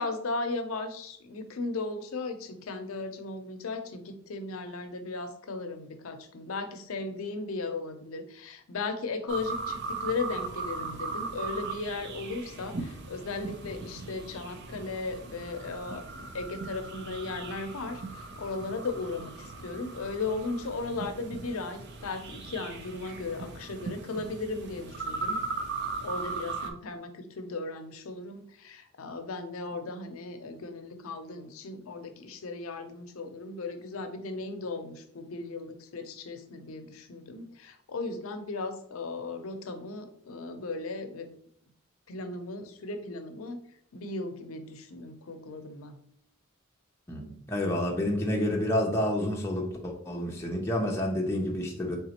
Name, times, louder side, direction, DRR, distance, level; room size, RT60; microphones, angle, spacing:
voice 1, 0.0-25.4 26.0-41.3 42.1-43.6 43.9-46.0, left 3 dB, 85° left, 7 dB, 0.6 m, -36 dB
sound 1, 9.3-26.7, right 4 dB, 50° right, 0.5 m, -38 dB
voice 2, 47.1-52.0, left 1 dB, 10° left, -1 dB, 0.5 m, -29 dB
4.0 x 3.5 x 2.9 m, 0.66 s
head